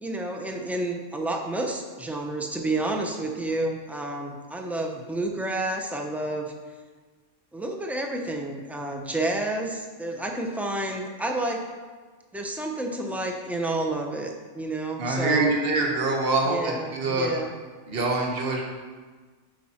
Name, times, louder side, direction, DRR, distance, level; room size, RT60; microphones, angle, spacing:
voice 1, 0.0-6.5 7.5-11.6 12.3-15.6 16.5-17.5, right 2 dB, ahead, 2 dB, 0.3 m, -30 dB
voice 2, 15.0-17.3 17.9-18.6, right 2 dB, 55° right, 0 dB, 1.3 m, -25 dB
9.1 x 4.7 x 4.2 m, 1.4 s
omnidirectional pair, 1.2 m